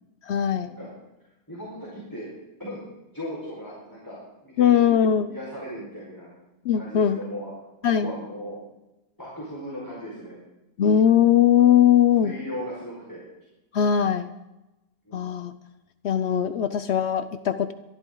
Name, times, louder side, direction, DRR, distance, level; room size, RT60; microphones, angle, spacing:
voice 1, 0.3-0.7 4.6-5.3 6.6-7.2 7.8-8.1 10.8-12.3 13.7-14.3 15.1-15.5 16.0-17.7, left 9 dB, 70° left, 11 dB, 0.6 m, -20 dB
voice 2, 1.5-2.3 2.6-2.8 3.1-4.2 4.4-4.9 5.3-6.3 6.8-7.5 7.8-8.6 9.2-10.4 12.2-13.2 15.0-15.3, equal, 10° left, -6 dB, 4.9 m, -37 dB
23.5 x 12.0 x 3.9 m, 0.98 s
omnidirectional pair, 1.9 m